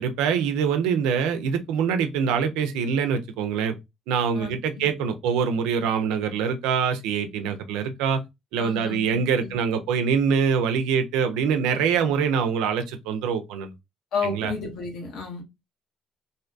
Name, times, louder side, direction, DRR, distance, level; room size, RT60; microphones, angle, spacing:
voice 1, 0.0-3.7 4.1-8.2 8.5-13.7 14.2-14.5, right 6 dB, 85° right, 0.4 m, -24 dB
voice 2, 4.3-4.9 8.6-9.6 14.1-15.4, left 5 dB, 70° left, 1.0 m, -32 dB
2.6 x 2.2 x 2.4 m
supercardioid pair, 65°, 0 cm